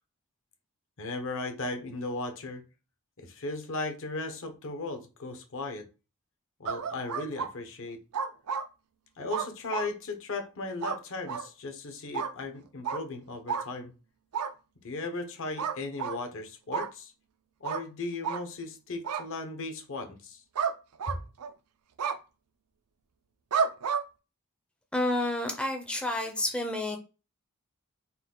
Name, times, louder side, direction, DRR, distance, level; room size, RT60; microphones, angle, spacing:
voice 1, 1.0-2.6 3.2-5.9 6.6-8.0 9.2-13.9 14.8-17.1 17.6-20.4 21.1-21.2, left 2 dB, 65° left, 5 dB, 0.9 m, -36 dB
sound 1, 6.7-7.5 8.1-8.7 9.3-9.9 10.8-11.0 11.3-11.5 12.1-12.3 12.8-13.0 13.5-13.7 14.3-14.5 15.6-16.2 16.7-16.9 17.6-17.8 18.2-18.4 19.0-19.2 20.6-20.7 21.0-21.5 22.0-22.2 23.5-24.0, right 6 dB, 85° right, 0.5 m, -30 dB
voice 2, 24.9-27.0, left 1 dB, 5° left, 2 dB, 0.5 m, -29 dB
4.2 x 2.3 x 3.7 m, 0.30 s
head